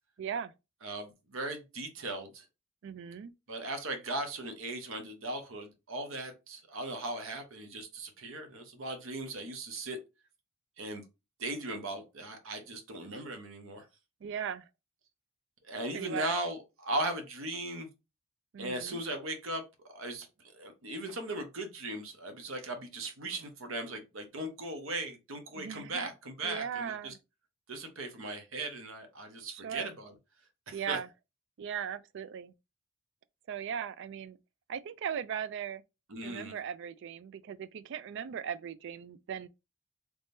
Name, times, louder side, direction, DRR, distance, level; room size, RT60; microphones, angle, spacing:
voice 1, 0.2-0.5 2.8-3.3 14.2-14.7 15.9-16.3 18.5-19.0 25.5-26.1 26.4-27.2 29.5-29.9 30.7-31.1 31.6-32.5 33.5-34.4 34.7-35.8 36.2-39.5, right 8 dB, 65° right, 0.3 m, -38 dB
voice 2, 0.8-2.4 3.5-10.0 10.8-11.0 11.4-13.9 15.7-17.9 18.6-27.1 27.7-30.1 30.7-31.0 36.1-36.5, right 2 dB, 80° right, 0.9 m, -38 dB
3.5 x 3.1 x 2.6 m
head